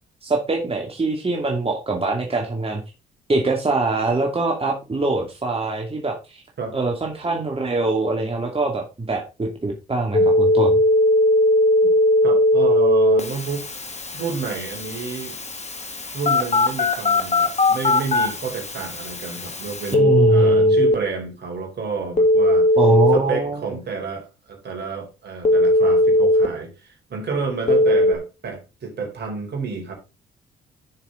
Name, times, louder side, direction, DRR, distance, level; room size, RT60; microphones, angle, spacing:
voice 1, 0.2-2.8 3.3-6.4 6.7-10.8 19.9-20.8 22.8-23.7, right 3 dB, 30° right, 2.4 m, -23 dB
Telephone, 10.1-20.9 22.2-23.2 25.4-26.5 27.7-28.1, left 1 dB, 35° left, 2.3 m, -18 dB
voice 2, 12.2-13.7 14.1-15.4 16.1-22.7 23.1-29.9, right 5 dB, 55° right, 4.1 m, -30 dB
10.5 x 6.6 x 3.8 m
hypercardioid pair, 50°, 21 cm